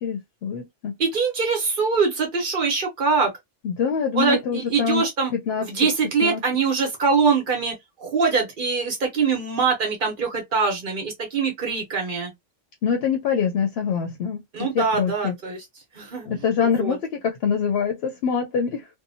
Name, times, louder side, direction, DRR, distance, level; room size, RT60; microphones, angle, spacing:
voice 1, 0.0-1.0 3.6-5.0 5.3-5.7 6.2-6.4 12.8-15.3 16.3-18.9, left 6 dB, 65° left, 0.7 m, -25 dB
voice 2, 1.0-3.3 4.1-5.3 5.6-12.3 14.5-15.6 15.9-17.0, right 5 dB, 50° right, 1.0 m, -23 dB
2.8 x 2.1 x 2.6 m
omnidirectional pair, 1.2 m